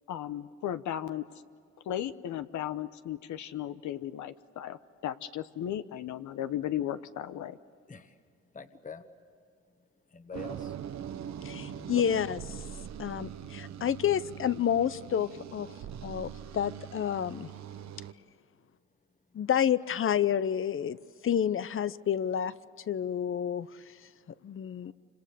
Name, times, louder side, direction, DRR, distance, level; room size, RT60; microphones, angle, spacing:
voice 1, 0.1-1.2 1.9-7.6, left 11 dB, 75° left, 11 dB, 0.9 m, -35 dB
voice 2, 8.5-9.0 10.1-10.8 11.5-12.0 24.8-24.9, left 5 dB, 25° left, 8 dB, 1.5 m, -44 dB
sound 1, 10.3-18.1, right 9 dB, 65° right, 1.0 m, -42 dB
voice 3, 11.4-12.4 13.0-15.7 16.0-17.5 19.3-21.0 21.2-22.5 22.9-23.7 24.4-24.9, left 9 dB, 45° left, 16 dB, 0.7 m, -29 dB
27.5 x 26.0 x 6.9 m, 2.2 s
cardioid pair, 90°, 30 cm